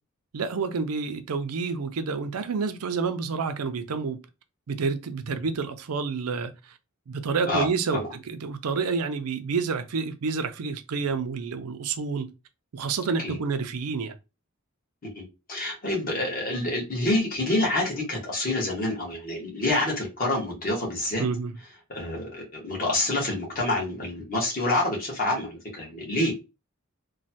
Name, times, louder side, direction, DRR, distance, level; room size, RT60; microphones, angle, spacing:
voice 1, 0.3-4.2 4.7-6.5 7.1-12.3 12.7-14.2 21.2-21.5, right 5 dB, 90° right, 0.5 m, -29 dB
voice 2, 7.5-8.0 13.2-13.4 15.1-21.2 21.9-26.3, left 2 dB, 40° left, 1.2 m, -27 dB
3.1 x 2.2 x 2.7 m
head